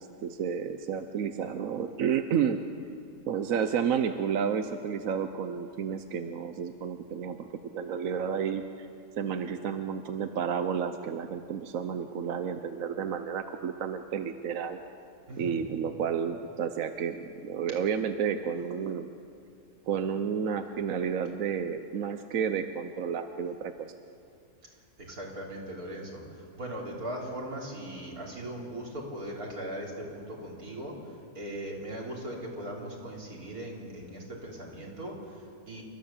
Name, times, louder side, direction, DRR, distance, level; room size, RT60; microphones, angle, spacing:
voice 1, 0.0-2.6 3.3-7.5 7.7-8.9 9.2-14.8 15.4-19.1 19.9-23.9, right 7 dB, 70° right, 8 dB, 1.2 m, -31 dB
voice 2, 15.3-15.6 25.0-35.8, right 1 dB, 85° right, -2 dB, 4.0 m, -39 dB
28.5 x 13.5 x 7.2 m, 2.5 s
omnidirectional pair, 1.5 m